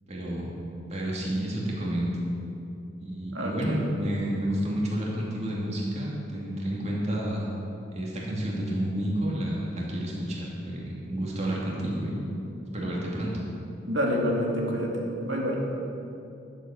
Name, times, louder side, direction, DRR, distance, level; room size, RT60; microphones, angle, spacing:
voice 1, 0.1-0.5 0.9-2.1 3.0-7.5 7.9-12.3 12.7-13.3, right 1 dB, 40° right, -4 dB, 2.5 m, -30 dB
voice 2, 3.3-3.9 13.9-15.6, equal, 90° right, -1 dB, 2.4 m, -28 dB
12.0 x 7.7 x 7.7 m, 2.8 s
head